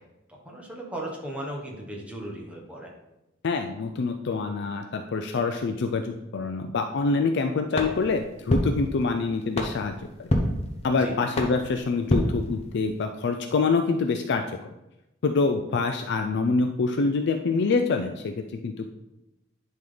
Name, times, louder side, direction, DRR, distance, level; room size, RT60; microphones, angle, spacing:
voice 1, 0.3-2.9 10.9-11.1, right 1 dB, 5° right, -1 dB, 1.3 m, -36 dB
voice 2, 3.4-10.3 10.8-14.4 15.2-18.3 18.6-18.9, left 4 dB, 60° left, 6 dB, 0.4 m, -26 dB
sound 1, 7.7-13.1, equal, 30° left, 1.0 m, -29 dB
10.5 x 3.7 x 3.9 m, 0.95 s
head